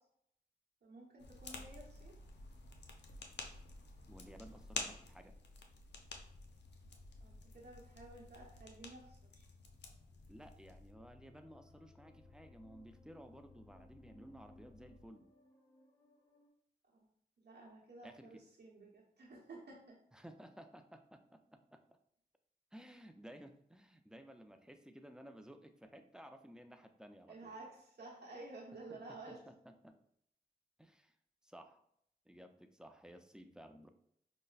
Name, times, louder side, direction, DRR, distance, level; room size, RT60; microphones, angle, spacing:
voice 1, 0.8-2.1 7.2-9.5 16.9-17.1 17.4-20.0 27.3-29.4, right 2 dB, 75° right, -3 dB, 0.9 m, -53 dB
sound 1, 1.2-10.9, left 3 dB, 90° left, 0.4 m, -50 dB
voice 2, 4.1-5.3 10.3-15.3 18.0-18.4 20.1-22.0 22.7-27.5 28.9-29.9 30.8-31.2 31.4-31.8 32.3-33.9, equal, 5° right, 6 dB, 0.4 m, -56 dB
sound 2, 6.0-15.1, left 3 dB, 50° left, 0.6 m, -62 dB
sound 3, 11.3-16.5, equal, 15° left, 0.8 m, -66 dB
5.3 x 2.1 x 2.4 m, 0.71 s
cardioid pair, 45°, 17 cm